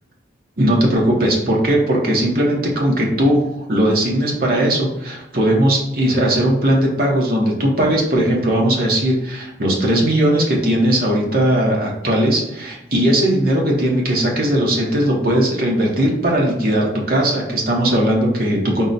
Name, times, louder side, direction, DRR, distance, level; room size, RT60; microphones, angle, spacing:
voice 1, 0.6-18.9, right 1 dB, 50° right, -2 dB, 0.8 m, -18 dB
3.8 x 2.1 x 4.0 m, 0.87 s
head